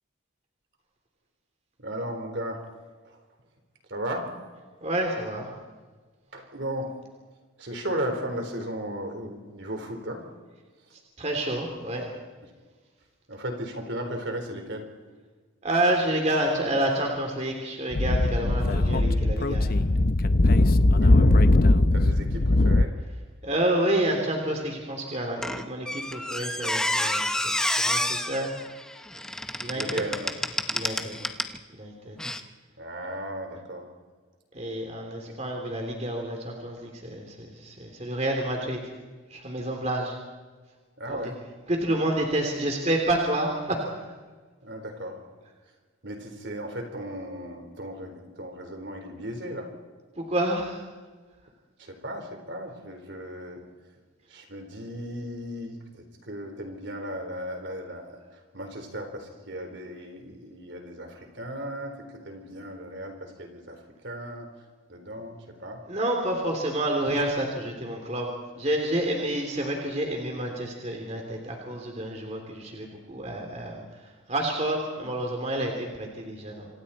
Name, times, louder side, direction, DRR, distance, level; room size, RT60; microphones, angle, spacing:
voice 1, 1.8-2.6 3.0-3.2 3.9-4.3 6.3-6.9 7.6-10.2 12.4-12.5 13.3-14.9 20.9-22.9 29.7-30.3 30.9-31.3 32.8-33.9 41.0-41.4 44.6-45.2 46.0-49.7 51.8-53.6 54.3-64.5 64.9-65.8 67.1-67.2, right 1 dB, 60° right, 4 dB, 4.2 m, -36 dB
voice 2, 4.8-5.5 11.2-12.1 15.6-19.7 23.4-28.5 29.6-30.0 30.7-31.2 31.8-32.2 34.5-38.8 39.3-40.1 41.1-41.2 41.7-43.8 50.2-50.8 65.9-68.3 68.6-73.8 74.3-76.7, right 1 dB, 35° right, 2 dB, 3.1 m, -29 dB
Speech / Wind, 17.9-22.9, left 2 dB, 45° left, 0.7 m, -20 dB
Squeak, 25.4-31.6 32.2-32.4, left 1 dB, 5° left, 0.9 m, -29 dB
28.0 x 26.5 x 4.3 m, 1.4 s
head